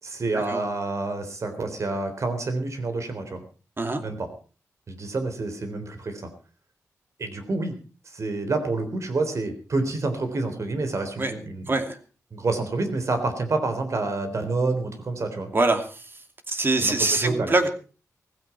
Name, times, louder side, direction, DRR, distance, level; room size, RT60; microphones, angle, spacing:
voice 1, 0.0-3.4 4.0-4.3 4.9-6.3 7.2-7.8 8.1-11.7 12.3-15.5 16.8-17.5, right 3 dB, 60° right, 8 dB, 3.7 m, -28 dB
voice 2, 11.7-12.0 15.5-16.2 16.5-17.7, right 2 dB, 40° right, 7 dB, 2.5 m, -24 dB
17.0 x 15.5 x 4.4 m, 0.37 s
wide cardioid pair, 85°, 6 cm